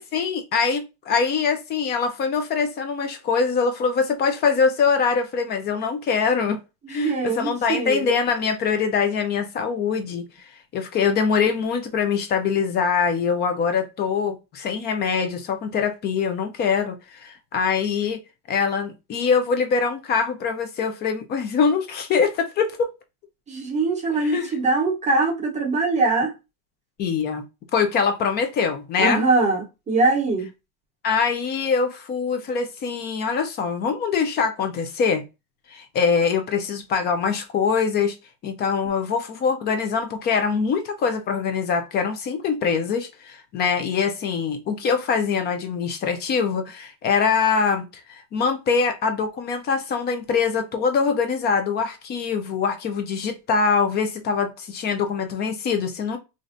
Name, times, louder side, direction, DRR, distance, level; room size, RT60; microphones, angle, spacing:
voice 1, 0.1-6.6 6.9-18.2 18.5-22.9 24.1-24.6 27.0-27.4 27.7-29.2 31.0-35.2 35.7-38.2 38.4-56.2, left 5 dB, 25° left, 0.4 m, -23 dB
voice 2, 6.9-8.1 23.5-26.3 29.0-30.5, right 3 dB, 15° right, 0.8 m, -22 dB
3.1 x 2.6 x 2.5 m
supercardioid pair, 140°, 44 cm